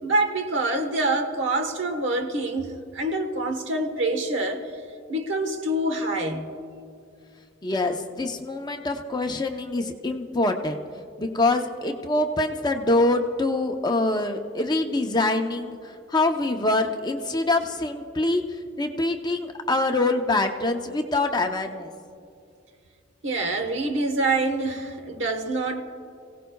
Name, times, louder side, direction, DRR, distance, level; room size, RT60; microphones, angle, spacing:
voice 1, 0.0-4.6 5.1-6.6 23.2-25.8, right 2 dB, 75° right, 5 dB, 1.2 m, -26 dB
voice 2, 7.6-10.8 11.2-15.8 16.1-18.4 18.8-21.9, left 2 dB, 20° left, 4 dB, 0.7 m, -24 dB
26.5 x 17.0 x 2.3 m, 2.4 s
head